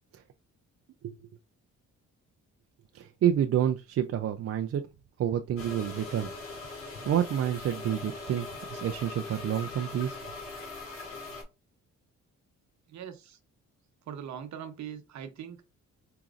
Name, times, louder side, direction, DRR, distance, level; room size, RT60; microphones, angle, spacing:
voice 1, 2.9-4.8 5.2-6.3 6.8-10.2, right 10 dB, 50° right, 0.5 m, -29 dB
sound 1, 5.6-11.4, left 3 dB, 45° left, 2.3 m, -41 dB
voice 2, 12.9-13.4 14.1-15.6, right 8 dB, 65° right, 1.0 m, -41 dB
4.9 x 2.8 x 2.4 m
cardioid pair, 90°, 30 cm